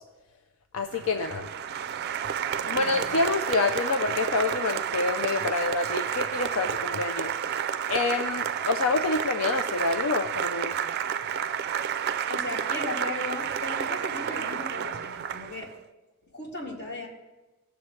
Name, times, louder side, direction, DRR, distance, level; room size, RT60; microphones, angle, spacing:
voice 1, 0.7-1.5 2.7-7.3 7.9-10.8, left 3 dB, 85° left, 6 dB, 0.5 m, -27 dB
Applause, 0.9-15.7, right 8 dB, 50° right, 0.4 m, -30 dB
voice 2, 2.6-3.0 12.3-15.7 16.3-17.1, left 2 dB, 55° left, -2 dB, 2.3 m, -36 dB
17.5 x 7.0 x 3.2 m, 1.1 s
head